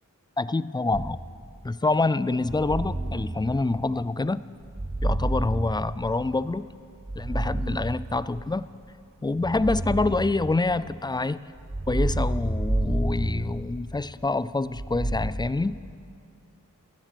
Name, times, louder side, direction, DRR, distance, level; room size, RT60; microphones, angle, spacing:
voice 1, 0.4-1.2 1.6-4.4 5.0-6.7 7.2-8.7 9.2-11.5 11.9-15.8, left 3 dB, 15° left, 16 dB, 0.3 m, -26 dB
sound 1, 0.9-1.6 2.4-4.1 4.7-6.5 7.0-8.6 9.4-11.0 11.6-14.1 14.7-15.3, right 1 dB, 20° right, 1.0 m, -30 dB
18.5 x 13.0 x 5.2 m, 2.4 s
wide cardioid pair, 50°, 33 cm